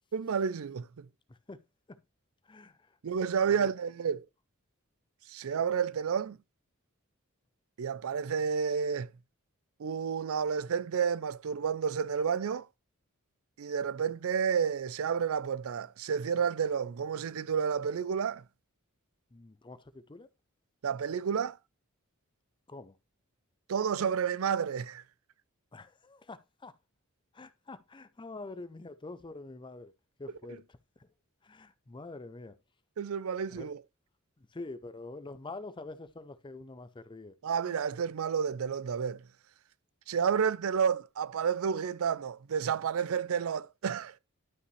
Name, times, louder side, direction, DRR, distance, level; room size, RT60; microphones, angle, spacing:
voice 1, 0.1-1.1 3.0-4.2 5.3-6.4 7.8-9.1 9.8-12.7 13.6-18.4 20.8-21.6 23.7-25.0 33.0-33.8 37.4-39.2 40.1-44.2, right 7 dB, 75° right, 0.4 m, -30 dB
voice 2, 1.3-1.6 1.9-2.0 2.4-2.8 3.5-3.7 19.3-20.3 22.7-23.0 25.7-26.7 27.3-29.9 30.2-31.1 31.4-32.6 33.5-33.7 34.5-37.4, left 2 dB, 20° left, 0.5 m, -46 dB
11.5 x 5.6 x 3.2 m
head